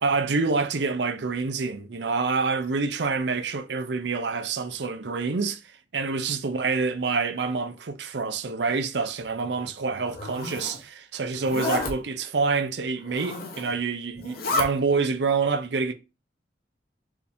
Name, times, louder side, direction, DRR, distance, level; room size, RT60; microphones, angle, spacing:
voice 1, 0.0-5.6 5.9-15.9, right 4 dB, 70° right, 0.6 m, -27 dB
Zipper (clothing), 10.0-10.8 11.4-11.9 13.0-13.7 14.1-14.7, left 2 dB, 55° left, 0.9 m, -30 dB
4.5 x 2.8 x 3.5 m
head